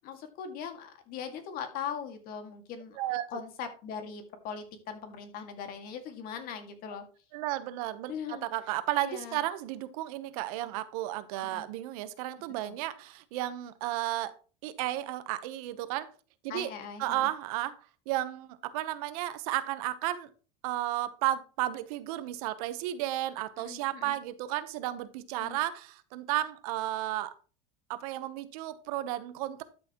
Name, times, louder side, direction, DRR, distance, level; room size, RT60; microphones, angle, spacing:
voice 1, 0.0-3.0 3.3-7.0 8.1-8.5 9.0-9.4 11.4-11.7 12.6-12.8 16.5-17.3 23.6-24.1 25.4-25.6, left 7 dB, 50° left, 2.1 m, -40 dB
voice 2, 3.0-3.3 7.3-14.3 14.6-16.1 16.4-16.7 17.0-17.8 18.1-20.3 20.6-27.3 27.9-29.6, right 14 dB, 80° right, 1.0 m, -33 dB
12.5 x 6.8 x 3.0 m
supercardioid pair, 140°, 19 cm